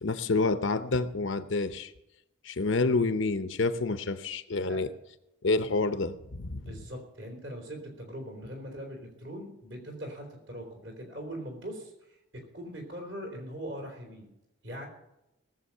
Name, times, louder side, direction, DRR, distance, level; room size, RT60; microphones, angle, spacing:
voice 1, 0.0-1.9 2.4-4.9 5.4-6.8, left 3 dB, 70° left, 11 dB, 0.8 m, -28 dB
voice 2, 6.5-14.3 14.6-14.9, equal, 60° right, 2 dB, 3.9 m, -41 dB
18.5 x 7.4 x 5.5 m, 0.88 s
head